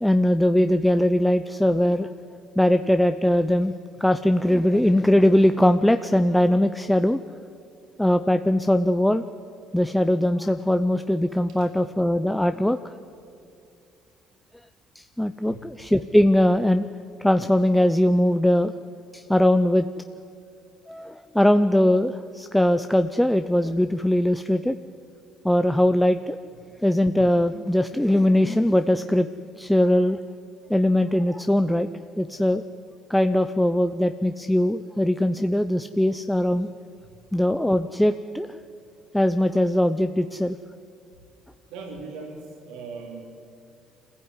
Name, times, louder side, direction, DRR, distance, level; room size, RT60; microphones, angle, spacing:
voice 1, 0.0-2.1 2.6-3.7 4.0-7.2 8.0-9.2 9.7-12.8 15.0-16.9 17.2-18.7 19.1-19.9 20.9-24.8 25.4-26.4 26.8-29.3 29.6-30.2 30.7-31.9 32.2-32.6 33.1-36.7 37.3-38.5 39.1-40.6, left 1 dB, 5° left, 8 dB, 0.6 m, -21 dB
voice 2, 41.7-43.2, right 4 dB, 85° right, 1 dB, 4.2 m, -39 dB
24.5 x 15.5 x 9.7 m, 2.5 s
cardioid pair, 105°, 0 cm